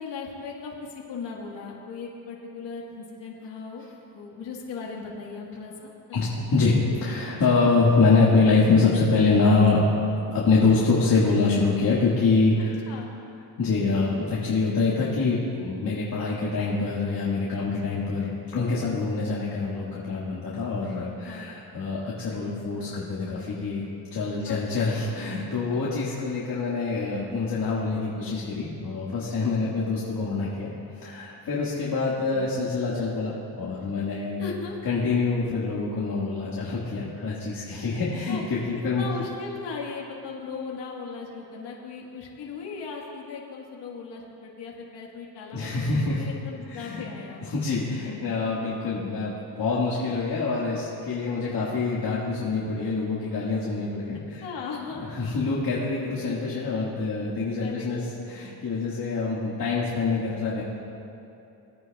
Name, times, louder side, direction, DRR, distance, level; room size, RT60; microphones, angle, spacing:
voice 1, 0.0-3.8 4.1-6.2 12.9-13.1 17.7-18.0 21.3-21.5 24.4-24.8 25.7-26.0 29.5-29.7 32.3-32.5 34.4-34.9 38.3-38.4 38.9-47.4 54.4-55.0 57.6-57.9, left 5 dB, 70° left, -2 dB, 1.6 m, -38 dB
voice 2, 6.1-9.8 10.3-12.8 13.6-23.8 24.1-30.7 31.0-34.4 34.8-39.0 45.5-46.2 46.7-47.0 47.4-54.4 54.9-58.0 58.3-60.6, left 4 dB, 50° left, -7 dB, 1.9 m, -25 dB
19.0 x 9.4 x 2.3 m, 2.8 s
cardioid pair, 85°, 44 cm